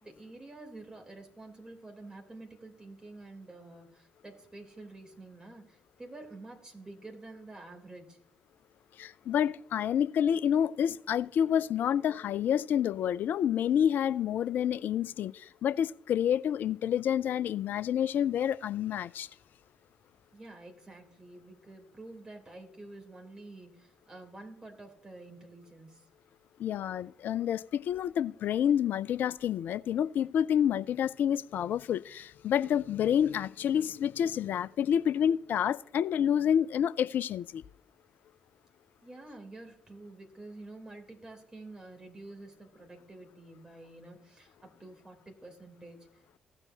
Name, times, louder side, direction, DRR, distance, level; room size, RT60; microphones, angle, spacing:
voice 1, 0.0-8.2 20.3-26.1 39.0-46.4, right 2 dB, 20° right, 3.4 m, -49 dB
voice 2, 9.0-19.3 26.6-37.6, left 9 dB, 55° left, 0.4 m, -28 dB
15.5 x 8.0 x 2.8 m
figure-of-eight pair, 40°, 4 cm